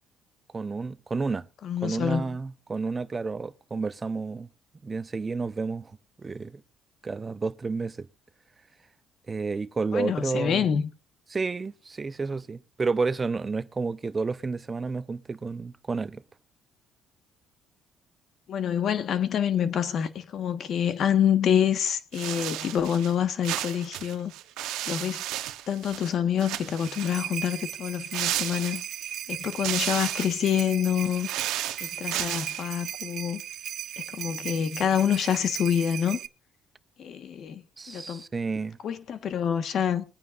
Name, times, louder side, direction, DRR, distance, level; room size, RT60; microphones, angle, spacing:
voice 1, 0.5-1.5 1.8-4.5 4.8-6.6 7.0-8.1 9.3-10.7 11.3-16.2 37.8-38.8, right 4 dB, 25° right, 0.6 m, -31 dB
voice 2, 1.6-2.3 9.9-10.9 18.5-24.3 24.9-25.2 25.7-28.8 29.3-31.3 31.8-33.4 34.0-36.2 37.0-37.6 37.9-38.2 38.8-40.0, left 8 dB, 55° left, 1.3 m, -27 dB
sound 1, 22.1-23.1 23.4-26.1 26.4-27.2 28.1-29.1 29.5-30.4 31.0-32.6, right 13 dB, 85° right, 0.9 m, -33 dB
sound 2, 26.6-36.3, right 11 dB, 65° right, 0.6 m, -37 dB
21.5 x 9.3 x 2.5 m
cardioid pair, 90°, 0 cm